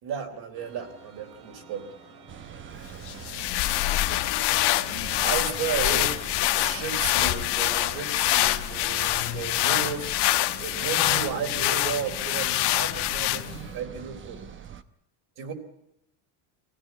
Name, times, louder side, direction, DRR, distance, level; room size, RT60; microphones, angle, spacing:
voice 1, 0.0-1.9 5.2-6.2 6.5-10.2 10.6-14.5 15.4-15.5, right 7 dB, 50° right, 3.8 m, -34 dB
sound 1, 0.5-12.4, right 4 dB, 85° right, 4.1 m, -50 dB
sound 2, 2.3-14.8, right 8 dB, 25° right, 0.9 m, -43 dB
sound 3, 3.1-13.7, left 16 dB, 55° left, 1.2 m, -25 dB
voice 2, 3.5-4.3 4.5-5.2 5.8-5.9, left 14 dB, 70° left, 2.4 m, -48 dB
25.0 x 17.0 x 9.5 m
cardioid pair, 160°, 49 cm